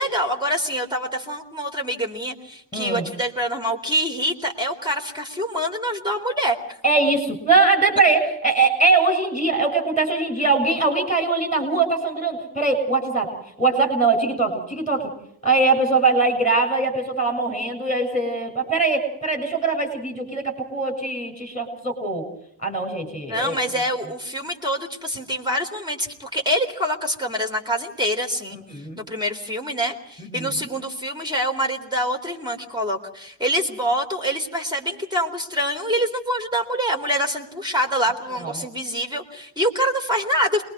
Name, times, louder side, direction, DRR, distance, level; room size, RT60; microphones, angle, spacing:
voice 1, 0.0-6.8 23.3-28.6 29.0-40.6, equal, 10° right, 2 dB, 3.7 m, -25 dB
voice 2, 2.7-3.0 6.8-13.3 13.6-15.1 15.4-22.2 22.6-23.6 28.5-29.0 30.2-30.7 38.4-38.5, right 3 dB, 15° left, 6 dB, 7.3 m, -21 dB
29.0 x 22.0 x 4.8 m, 0.70 s
wide cardioid pair, 145°, 45 cm